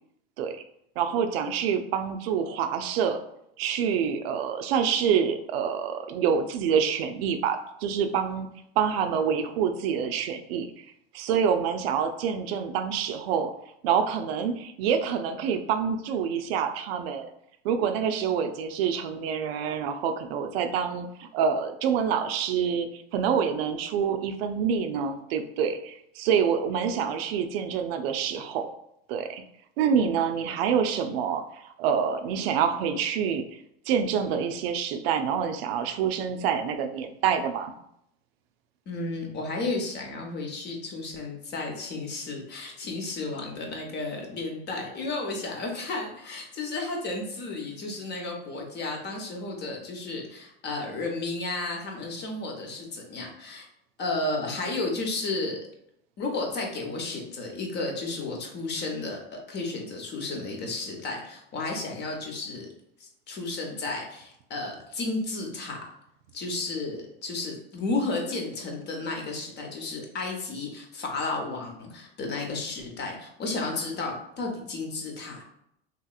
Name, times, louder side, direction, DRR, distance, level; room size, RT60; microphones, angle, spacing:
voice 1, 1.0-3.2 3.6-8.5 8.8-10.9 11.1-13.5 13.8-17.3 17.6-28.7 29.1-29.4 29.8-33.5 33.9-37.7, right 7 dB, 75° right, 7 dB, 0.4 m, -27 dB
voice 2, 38.9-53.7 54.0-55.6 56.2-62.7 63.0-65.8 66.3-75.4, left 3 dB, 35° left, 1 dB, 0.8 m, -33 dB
3.0 x 2.9 x 2.3 m, 0.75 s
supercardioid pair, 110°, 30 cm